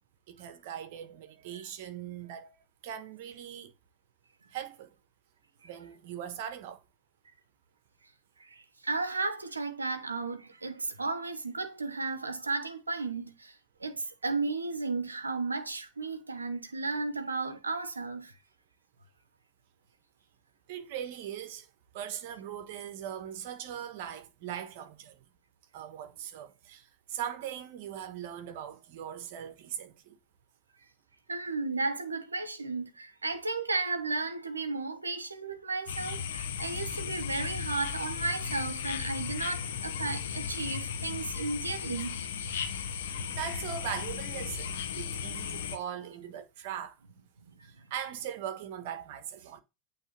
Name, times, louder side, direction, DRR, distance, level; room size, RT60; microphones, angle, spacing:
voice 1, 0.3-2.5 2.8-3.7 4.5-4.9 5.6-6.8 20.7-21.7 21.9-25.2 25.7-30.2 43.0-46.9 47.6-49.6, right 9 dB, 60° right, 1.3 m, -40 dB
voice 2, 8.4-18.4 31.3-42.2, right 3 dB, 90° right, 0.9 m, -34 dB
sound 1, 35.9-45.8, left 7 dB, 70° left, 1.2 m, -36 dB
8.7 x 3.5 x 5.9 m
hypercardioid pair, 90°, 0 cm